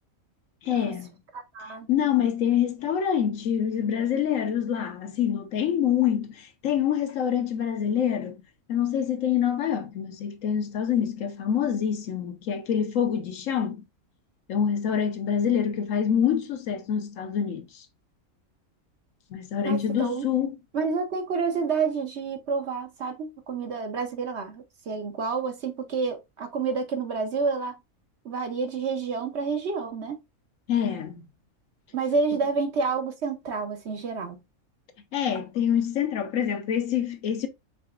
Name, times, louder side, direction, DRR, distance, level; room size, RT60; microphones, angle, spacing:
voice 1, 0.6-1.1 1.9-8.4 8.7-13.8 14.5-17.8 19.3-20.6 30.7-31.3 35.1-37.5, left 9 dB, 70° left, 1.1 m, -26 dB
voice 2, 1.5-1.9 19.6-20.3 20.7-27.8 28.2-30.2 31.9-34.4, right 4 dB, 55° right, 1.0 m, -29 dB
4.9 x 3.3 x 2.4 m
omnidirectional pair, 1.5 m